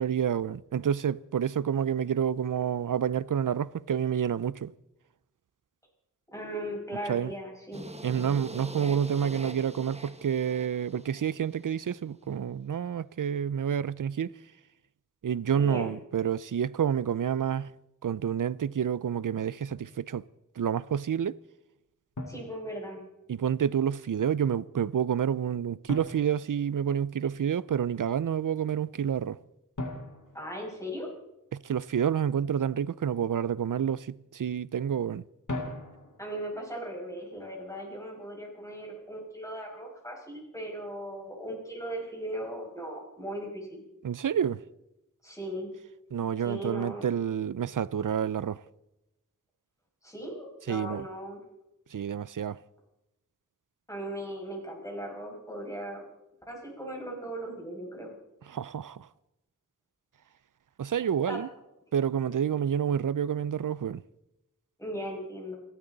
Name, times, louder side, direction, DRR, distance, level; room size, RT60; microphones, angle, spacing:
voice 1, 0.0-4.7 7.1-7.3 8.0-14.3 15.2-17.7 18.0-20.2 20.6-21.4 23.3-29.4 31.5-35.2 44.0-44.6 46.1-48.6 50.7-51.0 51.9-52.6 58.5-59.1 60.8-61.5 61.9-64.0, right 8 dB, 80° right, 0.5 m, -29 dB
voice 2, 6.3-7.9 15.6-15.9 22.3-23.0 30.3-31.1 36.2-43.8 45.2-45.7 46.4-47.1 50.0-51.4 53.9-56.0 56.5-58.1 61.3-61.4 64.8-65.5, equal, 10° left, 6.1 m, -38 dB
sound 1, 7.7-11.8, right 1 dB, 20° right, 1.1 m, -44 dB
Drum, 19.7-20.0 22.2-23.3 25.9-27.3 29.8-31.5 35.5-36.4, left 1 dB, 70° left, 2.2 m, -40 dB
29.5 x 12.5 x 4.0 m
wide cardioid pair, 55°, 31 cm